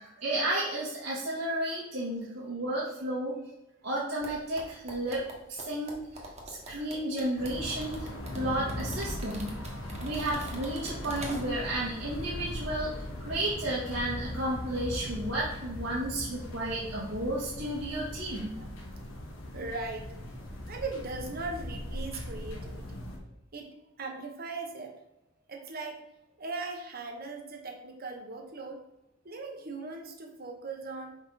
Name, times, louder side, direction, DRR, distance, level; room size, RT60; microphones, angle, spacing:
voice 1, 0.0-3.4 3.8-5.2 5.5-6.0 6.4-8.1 8.3-9.5 10.0-18.5, right 1 dB, 90° right, -9 dB, 1.9 m, -32 dB
sound 1, 4.2-11.8 12.1-12.2, right 1 dB, 35° right, 1.4 m, -44 dB
sound 2, 7.4-23.2, left 1 dB, 90° left, 1.3 m, -39 dB
voice 2, 19.5-20.1 20.7-23.0 23.5-24.9 25.5-26.0 26.4-28.8 29.2-31.2, right 3 dB, 50° right, 4 dB, 1.1 m, -39 dB
6.4 x 4.8 x 4.0 m, 0.92 s
head